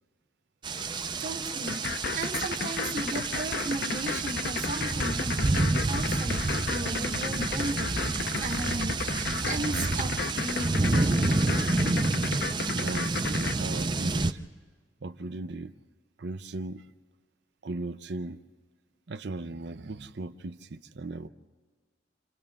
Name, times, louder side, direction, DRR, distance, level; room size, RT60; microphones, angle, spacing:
sound 1, 0.6-14.3, right 3 dB, 25° right, 0.5 m, -29 dB
voice 1, 1.2-11.5, right 2 dB, 45° right, 1.3 m, -36 dB
sound 2, 1.7-13.5, left 5 dB, 60° left, 0.6 m, -33 dB
voice 2, 12.5-14.4 15.0-15.7 16.2-16.9 17.6-18.4 19.1-21.3, right 2 dB, 65° right, 0.6 m, -38 dB
29.5 x 26.5 x 3.6 m
head